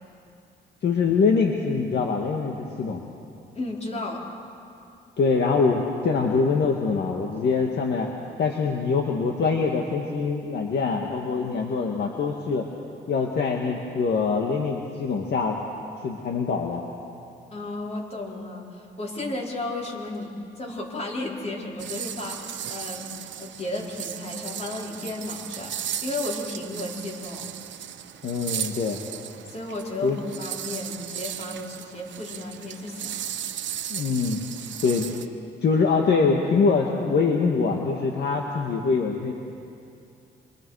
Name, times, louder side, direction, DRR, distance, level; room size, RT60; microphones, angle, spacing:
voice 1, 0.8-3.0 5.2-8.1 8.4-12.7 13.1-15.6 16.0-16.8 28.2-29.0 30.0-30.2 33.9-34.4 34.8-35.1 35.6-39.3, left 4 dB, 60° left, 1 dB, 1.9 m, -24 dB
voice 2, 3.5-4.2 17.5-20.3 20.6-23.1 23.4-27.5 29.5-33.3, left 2 dB, 35° left, -2 dB, 4.5 m, -33 dB
sound 1, 21.8-35.3, right 10 dB, 65° right, 1.0 m, -36 dB
28.0 x 25.5 x 4.9 m, 2.6 s
cardioid pair, 90°, 20 cm